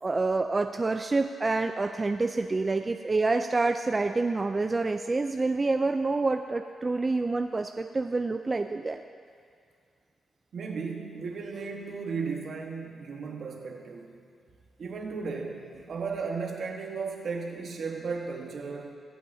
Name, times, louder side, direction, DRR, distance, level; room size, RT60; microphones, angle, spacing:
voice 1, 0.0-9.0, right 3 dB, 30° right, 6 dB, 0.4 m, -27 dB
voice 2, 10.5-14.2 14.8-19.0, right 4 dB, 65° right, 2 dB, 1.3 m, -35 dB
23.0 x 8.5 x 2.7 m, 2.2 s
cardioid pair, 80°, 0 cm